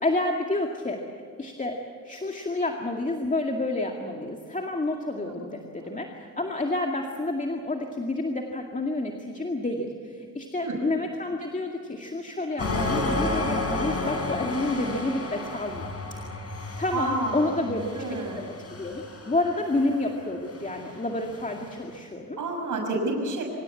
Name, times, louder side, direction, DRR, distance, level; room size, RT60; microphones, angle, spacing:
voice 1, 0.0-1.0 1.4-1.8 2.0-15.9 16.8-22.4, left 2 dB, 20° left, 2 dB, 2.3 m, -29 dB
sound 1, 12.6-21.8, left 2 dB, 45° left, 5.1 m, -32 dB
voice 2, 16.9-18.5 22.4-23.4, right 2 dB, 60° right, 1 dB, 6.3 m, -30 dB
26.0 x 16.5 x 8.5 m, 2.3 s
cardioid pair, 90°, 34 cm